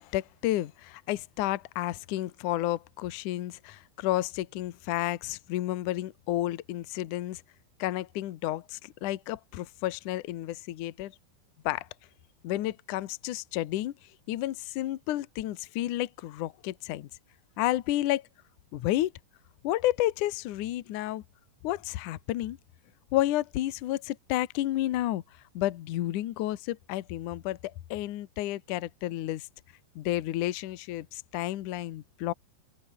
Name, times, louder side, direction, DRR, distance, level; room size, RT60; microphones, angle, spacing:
voice 1, 0.0-7.4 7.8-11.1 11.6-11.9 12.4-13.9 14.3-17.1 17.6-18.3 18.7-19.1 19.6-21.2 21.6-22.6 23.1-25.2 25.5-29.5 29.9-32.3, left 15 dB, 85° left, 1.7 m, -31 dB
open air
omnidirectional pair, 5.4 m